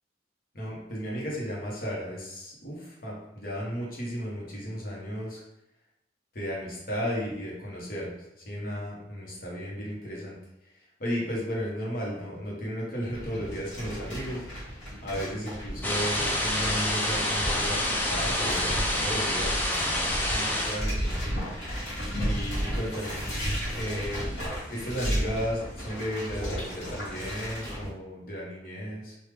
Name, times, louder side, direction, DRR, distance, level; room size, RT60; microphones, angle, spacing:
voice 1, 0.5-5.4 6.3-10.3 10.6-14.4 15.0-19.6 20.2-21.3 21.6-21.8 22.2-23.2 23.7-24.3 24.7-29.2, equal, 50° left, -4 dB, 1.0 m, -34 dB
sound 1, 13.1-27.9, equal, 75° left, 1.2 m, -34 dB
sound 2, 15.8-20.8, left 1 dB, 10° left, 0.4 m, -27 dB
3.2 x 2.3 x 3.3 m, 0.88 s
head